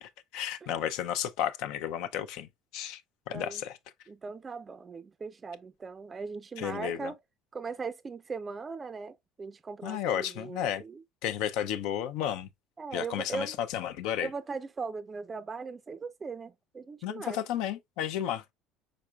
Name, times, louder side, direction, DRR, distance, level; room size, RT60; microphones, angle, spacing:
voice 1, 0.0-2.5 2.7-3.0 3.3-3.7 6.6-7.1 9.8-10.8 11.2-12.5 12.9-14.3 17.0-18.5, left 10 dB, 70° left, 0.5 m, -32 dB
voice 2, 3.3-3.6 4.1-7.2 7.5-11.0 12.8-13.6 14.2-17.4, right 4 dB, 30° right, 0.4 m, -39 dB
5.1 x 4.3 x 2.3 m
hypercardioid pair, 70°, 0 cm